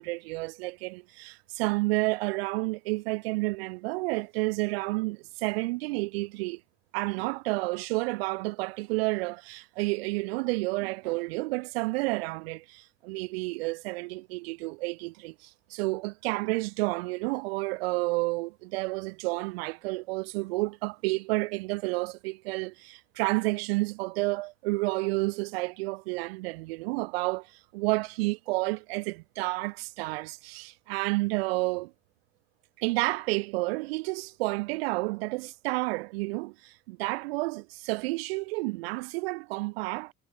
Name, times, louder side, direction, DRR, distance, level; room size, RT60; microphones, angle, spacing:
voice 1, 0.0-6.6 6.9-31.9 32.8-40.1, right 24 dB, 85° right, 0.5 m, -30 dB
hypercardioid pair, 70°, 30 cm